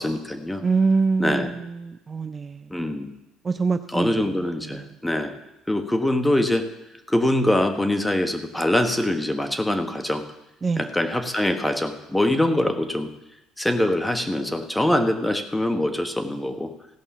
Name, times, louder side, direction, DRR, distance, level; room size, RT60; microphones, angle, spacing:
voice 1, 0.0-0.6 1.2-1.5 2.7-3.1 3.9-5.3 5.7-6.7 7.1-10.2 10.8-13.1 13.6-16.7, left 1 dB, 5° left, 7 dB, 1.3 m, -23 dB
voice 2, 0.6-2.7 3.4-4.3 4.6-4.9 10.6-10.9, right 4 dB, 30° right, 10 dB, 0.5 m, -25 dB
16.0 x 5.5 x 7.2 m, 0.94 s
cardioid pair, 100°, 0 cm